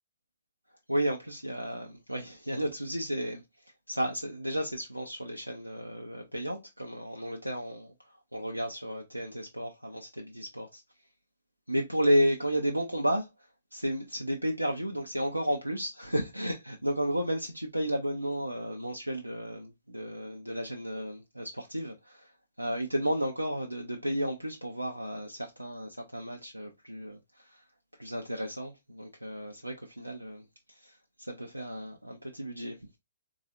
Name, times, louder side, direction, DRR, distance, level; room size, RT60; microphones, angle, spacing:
voice 1, 0.9-3.4 3.9-10.8 11.7-22.3 22.6-27.6 28.0-32.9, equal, 85° right, 0.6 m, -33 dB
3.8 x 3.1 x 2.5 m
figure-of-eight pair, 120°, 0 cm